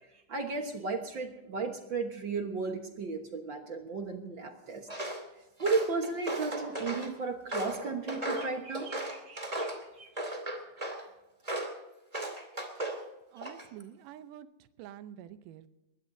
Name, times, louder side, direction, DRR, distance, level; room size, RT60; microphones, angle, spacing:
voice 1, 0.3-4.9 5.6-9.7 10.0-10.1, right 4 dB, 50° right, 4 dB, 1.5 m, -34 dB
Walk footsteps, 4.9-5.2 5.6-7.1 7.5-9.8 10.2-11.0 11.5-11.8 12.1-13.0 13.4-13.8, right 1 dB, 15° right, 2.0 m, -36 dB
voice 2, 13.3-15.7, right 11 dB, 85° right, 11 dB, 2.4 m, -48 dB
21.5 x 19.5 x 2.7 m, 0.97 s
omnidirectional pair, 3.7 m